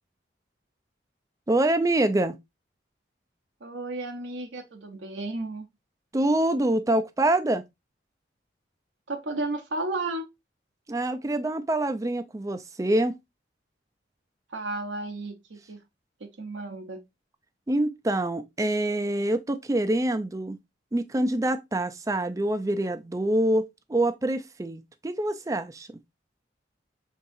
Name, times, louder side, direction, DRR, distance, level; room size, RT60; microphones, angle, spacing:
voice 1, 1.5-2.4 6.1-7.6 10.9-13.1 17.7-20.6 20.9-26.0, right 1 dB, 20° right, 0.4 m, -25 dB
voice 2, 3.6-5.7 9.1-10.3 14.5-15.8 16.2-17.0, right 2 dB, 85° right, 0.8 m, -33 dB
5.5 x 3.6 x 2.5 m
head